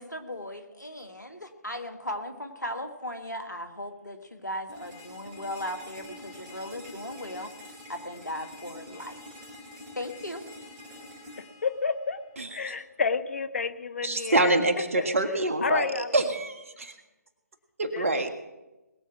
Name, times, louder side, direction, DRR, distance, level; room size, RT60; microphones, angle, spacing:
voice 1, 0.0-7.5 7.9-9.2 10.0-10.4, left 1 dB, 85° left, 7 dB, 1.8 m, -37 dB
sound 1, 4.7-12.7, left 1 dB, 20° right, 3.1 m, -46 dB
voice 2, 11.4-12.2 12.5-14.6 15.0-15.1 15.6-16.2 17.9-18.3, left 5 dB, 50° left, 12 dB, 0.8 m, -30 dB
voice 3, 14.0-15.9 16.1-16.9 17.8-18.3, right 2 dB, 50° right, 6 dB, 1.7 m, -25 dB
20.5 x 7.6 x 5.9 m, 1.1 s
figure-of-eight pair, 145°, 9 cm